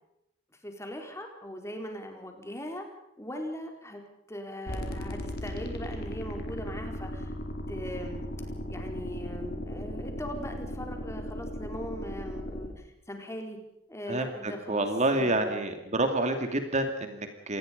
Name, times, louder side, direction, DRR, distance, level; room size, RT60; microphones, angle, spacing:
voice 1, 0.6-2.8 3.2-4.0 4.3-7.3 7.7-8.3 8.7-13.6 13.9-14.9 15.1-15.8, equal, 15° left, 4 dB, 4.4 m, -40 dB
sound 1, 4.7-12.7, left 1 dB, 55° left, 4.4 m, -37 dB
voice 2, 14.1-17.6, right 2 dB, 40° right, 6 dB, 2.7 m, -28 dB
27.0 x 20.0 x 5.4 m, 0.81 s
head